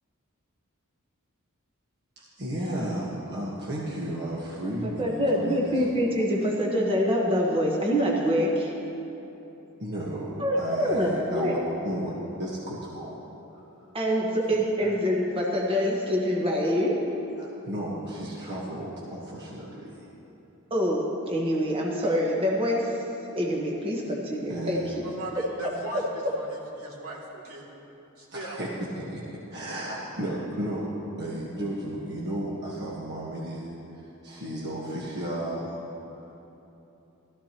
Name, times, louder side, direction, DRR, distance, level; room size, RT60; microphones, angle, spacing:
voice 1, 2.4-6.1 9.8-11.6 11.8-12.1 12.4-13.2 14.8-14.9 17.4-19.9 24.5-24.9 28.3-29.2 29.5-33.7 34.2-35.8, right 1 dB, 50° right, -6 dB, 1.4 m, -33 dB
voice 2, 5.0-8.7 10.4-11.5 13.9-17.0 20.7-23.0 23.3-25.1, equal, 25° right, -3 dB, 1.3 m, -25 dB
voice 3, 25.0-26.0 26.4-26.5 26.8-27.6 28.2-28.6, right 1 dB, 80° right, -4 dB, 2.6 m, -38 dB
16.5 x 14.0 x 3.0 m, 3.0 s
head